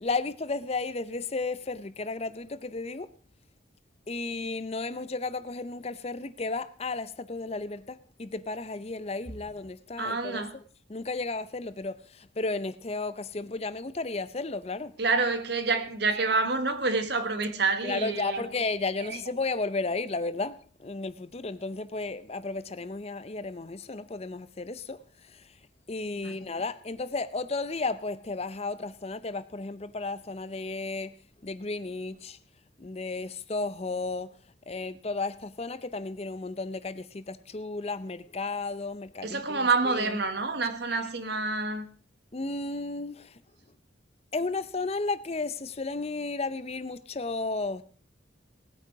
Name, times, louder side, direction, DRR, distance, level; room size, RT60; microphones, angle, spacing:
voice 1, 0.0-3.1 4.1-10.4 10.9-14.9 17.8-25.6 25.9-31.2 31.4-32.4 32.8-34.3 34.7-40.2 40.9-41.0 42.3-43.4 44.3-47.8, left 3 dB, 35° left, 0.6 m, -33 dB
voice 2, 10.0-10.5 15.0-18.4 19.0-19.2 26.2-26.3 39.2-41.8, right 3 dB, 60° right, 1.5 m, -28 dB
19.0 x 9.0 x 4.7 m
head